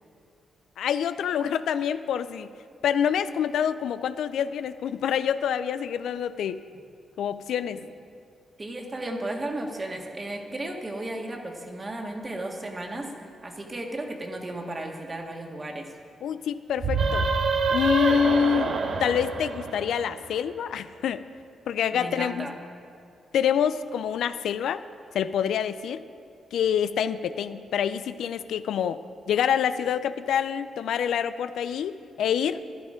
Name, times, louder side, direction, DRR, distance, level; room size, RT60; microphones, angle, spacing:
voice 1, 0.8-2.5 2.8-6.6 7.2-7.8 16.2-17.3 17.7-21.2 21.7-22.5 23.3-24.8 25.1-26.0 26.5-29.0 29.3-32.6, left 8 dB, 80° left, 12 dB, 0.4 m, -26 dB
voice 2, 8.6-13.1 13.4-15.9 21.9-22.5, right 1 dB, 30° right, 1 dB, 1.9 m, -34 dB
sound 1, 16.8-20.4, right 4 dB, 65° right, 1.1 m, -26 dB
13.0 x 11.5 x 5.1 m, 2.3 s
cardioid pair, 65°, 0 cm